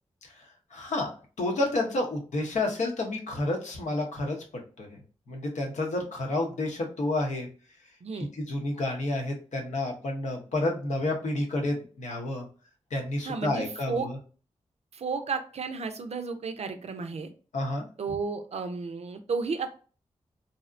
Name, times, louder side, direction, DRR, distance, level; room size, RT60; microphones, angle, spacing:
voice 1, 0.7-1.1 1.4-4.4 4.8-5.0 5.3-7.5 8.1-12.5 12.9-14.2 17.5-17.8, left 2 dB, 70° left, 1 dB, 0.8 m, -30 dB
voice 2, 13.2-14.1 14.9-17.3 18.0-19.7, right 4 dB, 60° right, 8 dB, 0.4 m, -33 dB
2.6 x 2.1 x 2.4 m, 0.38 s
cardioid pair, 45°, 12 cm